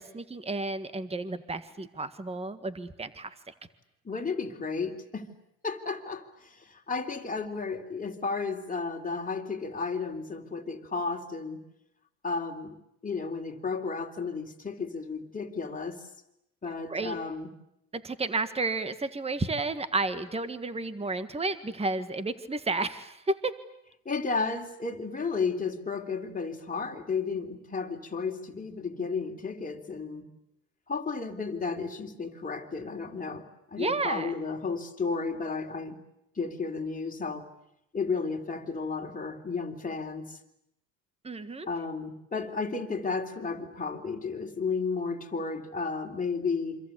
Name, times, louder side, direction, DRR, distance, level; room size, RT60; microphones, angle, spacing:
voice 1, 0.0-3.5 16.9-17.2 17.9-23.5 33.8-34.3 41.2-41.7, right 3 dB, 15° right, 11 dB, 1.7 m, -32 dB
voice 2, 4.1-5.3 5.6-11.6 12.2-12.8 13.0-16.1 16.6-17.5 24.1-30.2 30.9-36.0 36.4-37.5 37.9-40.4 41.7-46.8, left 4 dB, 20° left, 3 dB, 3.5 m, -33 dB
27.5 x 26.0 x 8.4 m, 0.81 s
supercardioid pair, 95°, 45 cm